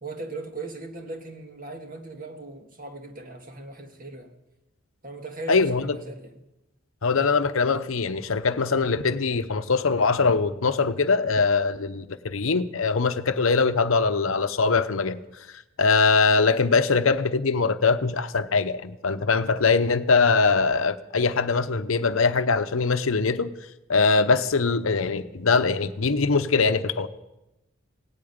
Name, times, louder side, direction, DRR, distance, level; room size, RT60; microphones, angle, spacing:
voice 1, 0.0-4.4 5.0-6.4, right 2 dB, 40° right, 1.8 m, -38 dB
voice 2, 5.5-6.0 7.0-15.2 15.8-23.5 23.9-27.1, left 4 dB, 70° left, 0.8 m, -22 dB
17.0 x 8.6 x 9.5 m
head